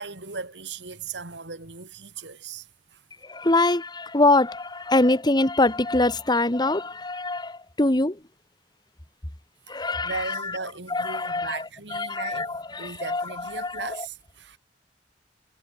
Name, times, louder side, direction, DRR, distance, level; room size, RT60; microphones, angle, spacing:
voice 1, 0.0-3.0 9.8-14.6, right 4 dB, 70° right, 3.6 m, -37 dB
voice 2, 3.3-8.2 9.7-10.4 10.9-11.6 11.9-13.2 13.6-13.8, left 2 dB, 25° left, 1.8 m, -23 dB
head